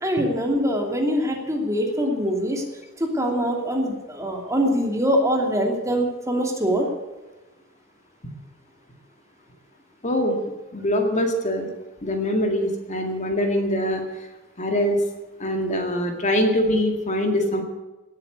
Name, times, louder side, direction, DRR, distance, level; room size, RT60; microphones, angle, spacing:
voice 1, 0.0-2.6 3.0-6.9, equal, 15° right, 1 dB, 2.8 m, -23 dB
voice 2, 10.0-10.4 10.7-11.7 12.0-14.1 14.6-15.0 15.4-17.6, equal, 35° left, 4 dB, 2.1 m, -23 dB
18.0 x 8.9 x 8.2 m, 1.1 s
head